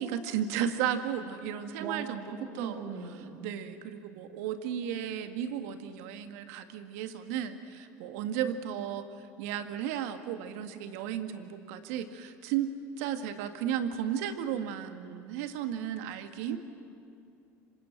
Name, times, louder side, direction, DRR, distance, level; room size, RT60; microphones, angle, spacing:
voice 1, 0.0-2.8 3.4-16.6, right 9 dB, 75° right, 7 dB, 2.0 m, -34 dB
voice 2, 1.8-3.5 16.5-16.6, right 6 dB, 60° right, 2 dB, 2.7 m, -39 dB
27.0 x 25.5 x 8.2 m, 2.5 s
hypercardioid pair, 80°, 8 cm